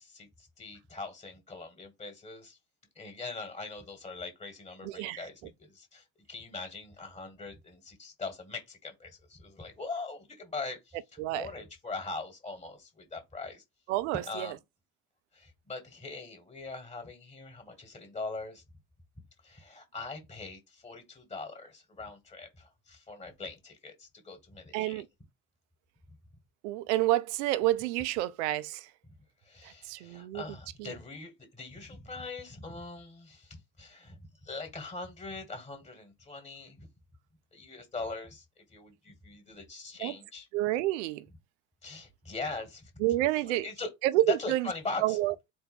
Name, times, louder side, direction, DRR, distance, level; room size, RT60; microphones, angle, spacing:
voice 1, 0.0-2.6 2.9-13.6 14.3-14.6 15.3-18.6 19.4-25.0 29.4-36.9 37.5-40.5 41.8-42.9 43.4-43.9 44.3-45.2, left 3 dB, 15° left, 1.5 m, -41 dB
voice 2, 4.9-5.2 11.2-11.5 13.9-14.5 24.7-25.1 26.6-28.9 29.6-30.4 30.8-30.9 40.0-40.1 40.5-41.2 43.0-43.7 44.0-44.7 45.0-45.5, right 16 dB, 55° right, 0.5 m, -29 dB
4.4 x 2.1 x 4.5 m
figure-of-eight pair, 60°, 42 cm